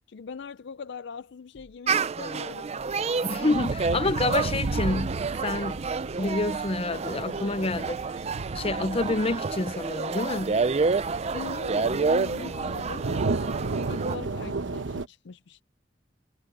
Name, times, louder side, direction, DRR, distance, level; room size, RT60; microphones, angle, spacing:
voice 1, 0.1-2.7 11.3-13.1 13.9-15.6, left 5 dB, 65° left, 0.5 m, -40 dB
sound 1, 1.5-2.1 2.8-3.8 4.7-5.2 5.6-7.7 8.4-9.5 10.4-10.9 11.3-12.8, equal, 50° left, 4.5 m, -56 dB
sound 2, 1.9-14.2, right 4 dB, 35° right, 0.5 m, -29 dB
voice 2, 3.2-5.2 5.4-5.8 6.2-8.0 8.5-10.6, left 2 dB, 30° left, 0.7 m, -28 dB
sound 3, 3.5-15.1, right 3 dB, 90° right, 1.0 m, -34 dB
head